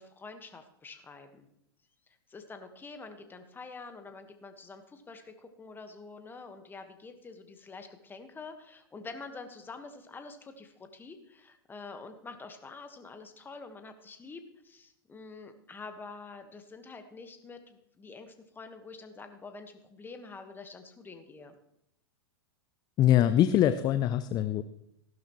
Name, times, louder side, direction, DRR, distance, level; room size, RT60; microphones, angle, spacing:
voice 1, 0.0-1.5 2.3-21.5, left 4 dB, 15° left, 7 dB, 1.4 m, -47 dB
voice 2, 23.0-24.6, left 11 dB, 30° left, 12 dB, 0.5 m, -23 dB
15.0 x 12.0 x 3.1 m, 0.78 s
hypercardioid pair, 110°, 13 cm